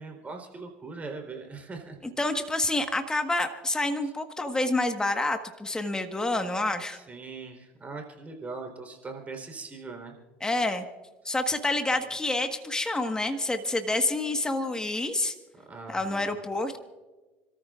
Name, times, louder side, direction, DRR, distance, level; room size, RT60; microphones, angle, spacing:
voice 1, 0.0-2.0 6.9-10.1 15.7-16.3, right 4 dB, 25° right, 3 dB, 3.9 m, -40 dB
voice 2, 2.0-7.0 10.4-10.8 11.2-15.3 15.9-16.8, left 2 dB, 15° left, 6 dB, 1.5 m, -28 dB
30.0 x 14.0 x 2.5 m, 1.2 s
supercardioid pair, 85°, 5 cm